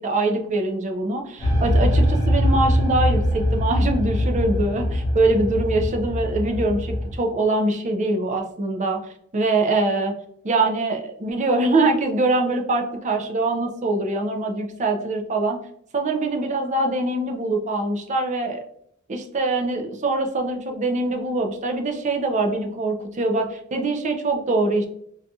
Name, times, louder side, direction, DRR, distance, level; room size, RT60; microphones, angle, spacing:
voice 1, 0.0-9.0 9.3-10.1 10.4-15.6 15.9-18.6 19.1-24.9, right 2 dB, 35° right, 3 dB, 0.5 m, -23 dB
sound 1, 1.4-7.2, equal, 15° left, 1.4 m, -22 dB
3.9 x 2.7 x 2.3 m, 0.70 s
head